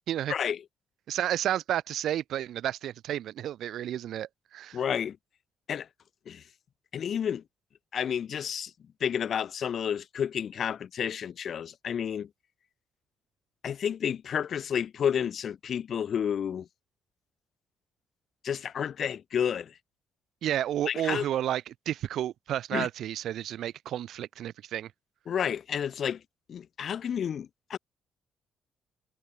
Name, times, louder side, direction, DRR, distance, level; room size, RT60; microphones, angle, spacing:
voice 1, 1.1-4.8 20.4-24.9, right 11 dB, 75° right, 1.2 m, -31 dB
voice 2, 4.7-5.2 5.7-5.9 6.3-6.4 6.9-7.4 7.9-8.7 9.0-12.3 13.6-16.7 18.4-19.7 20.9-21.2 22.7-22.9 25.3-26.2 26.5-27.8, left 8 dB, 60° left, 0.6 m, -30 dB
cardioid pair, 90°, 0 cm